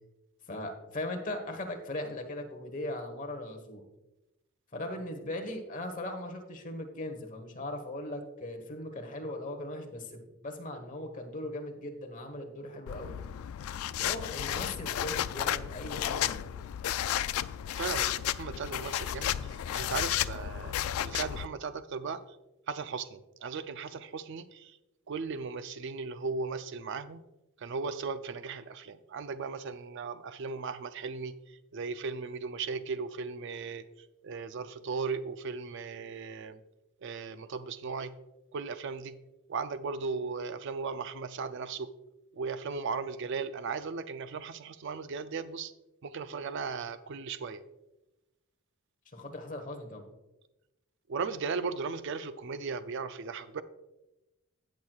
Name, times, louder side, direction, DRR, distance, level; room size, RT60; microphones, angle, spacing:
voice 1, 0.5-3.8 4.7-10.1 10.4-13.1 14.0-16.5 49.1-50.0, left 1 dB, 35° left, 4 dB, 1.2 m, -39 dB
sound 1, 12.9-21.5, left 11 dB, 75° left, 0.3 m, -33 dB
voice 2, 17.8-22.2 22.7-24.8 25.1-27.2 27.6-33.8 34.2-36.6 37.0-38.1 38.5-39.2 39.5-41.9 42.3-45.7 46.0-47.6 51.1-53.6, right 4 dB, 55° right, 12 dB, 0.4 m, -37 dB
17.0 x 6.1 x 2.3 m, 0.98 s
head